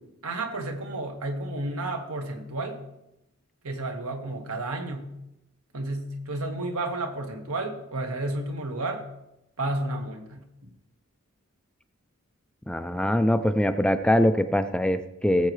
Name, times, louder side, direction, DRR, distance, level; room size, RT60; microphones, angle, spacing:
voice 1, 0.2-2.8 3.6-5.1 5.7-9.0 9.6-10.4, right 2 dB, 85° right, 3 dB, 1.6 m, -31 dB
voice 2, 12.7-15.5, equal, 5° left, 9 dB, 0.3 m, -23 dB
18.5 x 7.6 x 3.2 m, 0.86 s
head